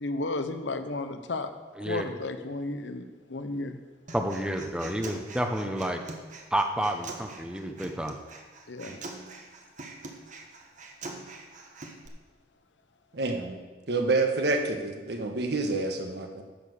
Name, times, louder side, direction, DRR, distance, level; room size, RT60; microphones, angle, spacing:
voice 1, 0.0-1.5 1.8-3.8 8.7-9.0, left 2 dB, 85° left, 8 dB, 0.9 m, -33 dB
voice 2, 4.1-6.0 6.5-8.2, right 1 dB, 5° right, 5 dB, 0.9 m, -30 dB
Human voice, 4.1-12.1, right 3 dB, 45° right, 1.2 m, -44 dB
voice 3, 13.1-13.6 13.9-16.4, right 3 dB, 65° right, 4 dB, 1.3 m, -28 dB
10.5 x 7.3 x 6.5 m, 1.3 s
head